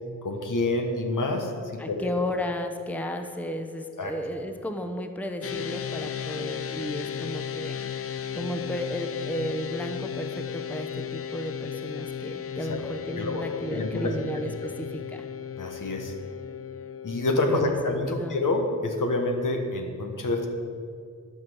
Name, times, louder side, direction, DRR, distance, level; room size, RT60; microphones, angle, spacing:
voice 1, 0.2-2.1 4.0-4.1 12.6-12.8 13.2-14.1 14.6-14.7 15.6-16.1 17.0-20.5, left 2 dB, 70° left, 3 dB, 1.5 m, -27 dB
voice 2, 1.8-7.7 8.3-15.2 17.5-17.7 18.1-18.4, equal, 5° left, 6 dB, 0.7 m, -33 dB
sound 1, 5.4-17.6, left 8 dB, 45° left, 0.5 m, -35 dB
12.0 x 6.1 x 7.7 m, 2.2 s
wide cardioid pair, 110°, 32 cm